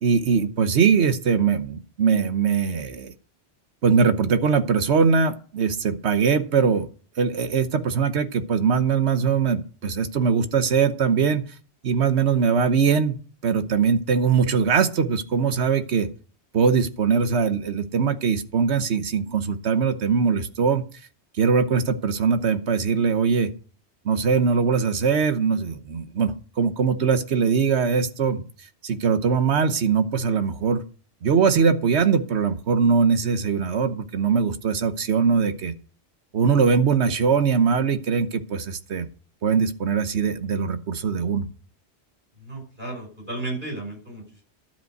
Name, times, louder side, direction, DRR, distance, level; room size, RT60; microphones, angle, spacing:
voice 1, 0.0-3.1 3.8-6.9 7.2-11.5 11.8-16.1 16.5-20.8 21.4-23.5 24.0-28.4 28.8-30.8 31.2-35.7 36.3-39.1 39.4-41.5, right 5 dB, 75° right, 10 dB, 1.3 m, -21 dB
voice 2, 42.4-44.4, right 2 dB, 45° right, 1 dB, 5.9 m, -34 dB
12.0 x 5.4 x 7.8 m, 0.41 s
omnidirectional pair, 1.1 m